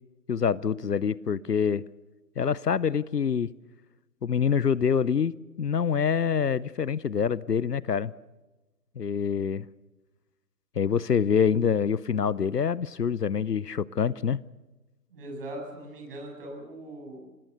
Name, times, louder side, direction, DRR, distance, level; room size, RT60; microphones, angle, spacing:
voice 1, 0.3-1.8 2.4-3.5 4.2-8.1 9.0-9.7 10.8-14.4, left 7 dB, 70° left, 22 dB, 0.7 m, -26 dB
voice 2, 15.1-17.2, right 1 dB, 35° right, 1 dB, 7.9 m, -40 dB
26.5 x 20.0 x 6.8 m, 1.1 s
figure-of-eight pair, 150°, 50 cm